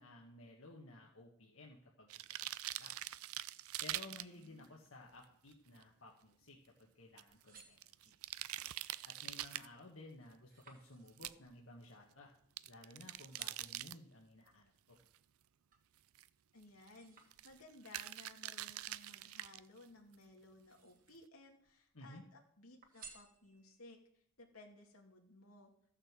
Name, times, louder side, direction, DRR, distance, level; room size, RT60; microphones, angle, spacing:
voice 1, 0.0-3.2 3.8-8.1 9.0-12.3 12.7-15.0 21.9-22.2, left 2 dB, 70° left, -1 dB, 1.6 m, -56 dB
sound 1, 2.1-4.7 5.2-5.3 5.5-5.6 5.8-5.9 7.2-9.7 11.1-11.3 12.6-13.9 15.2-15.3 16.1-16.3 16.6-16.9 17.3-17.6 17.9-19.6 20.1-20.2, right 14 dB, 90° right, 0.4 m, -44 dB
voice 2, 4.1-4.7 16.5-17.2 17.4-24.0 24.4-25.7, left 2 dB, 90° left, 1 dB, 2.5 m, -59 dB
sound 2, 7.3-8.4 9.0-9.4 9.7-12.8 13.1-13.8 14.4-15.9 16.3-17.9 18.8-19.9 20.5-21.3 21.6-22.3 22.8-23.9 24.4-24.5, right 5 dB, 40° right, 2.0 m, -62 dB
14.5 x 6.6 x 7.5 m, 0.68 s
head